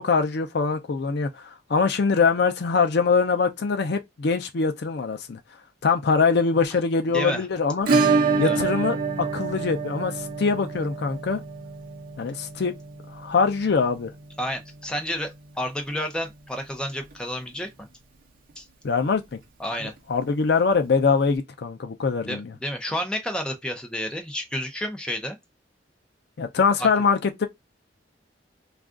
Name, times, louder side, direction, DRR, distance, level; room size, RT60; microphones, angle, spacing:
voice 1, 0.0-5.4 5.8-7.9 8.4-11.4 12.2-12.7 13.1-14.1 18.8-19.4 20.1-22.5 26.4-27.5, left 5 dB, 60° left, 0.5 m, -23 dB
voice 2, 7.1-7.5 8.4-8.6 14.4-15.3 15.6-17.7 18.6-18.7 19.6-19.9 22.3-25.4 26.8-26.9, equal, 5° left, 0.5 m, -30 dB
Acoustic guitar / Strum, 7.9-16.5 16.7-16.8 17.1-17.2 17.6-17.7 19.7-19.8 20.9-21.0, right 4 dB, 50° right, 0.7 m, -28 dB
2.4 x 2.3 x 3.6 m
head